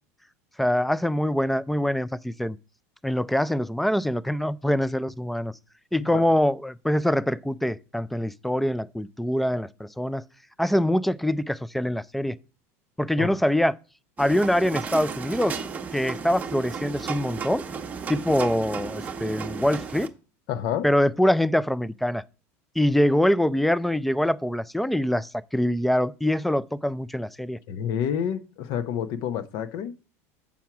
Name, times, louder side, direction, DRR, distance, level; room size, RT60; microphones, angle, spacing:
voice 1, 0.6-2.6 3.0-5.5 5.9-10.2 10.6-12.4 13.0-13.8 14.2-15.6 15.9-17.6 18.1-20.1 20.8-22.2 22.8-27.6, left 1 dB, ahead, 0.3 m, -24 dB
sound 1, 14.2-20.1, right 5 dB, 20° right, 0.9 m, -34 dB
voice 2, 20.5-20.9 27.7-29.9, left 8 dB, 60° left, 0.8 m, -29 dB
7.2 x 4.5 x 5.9 m
supercardioid pair, 125°, 8 cm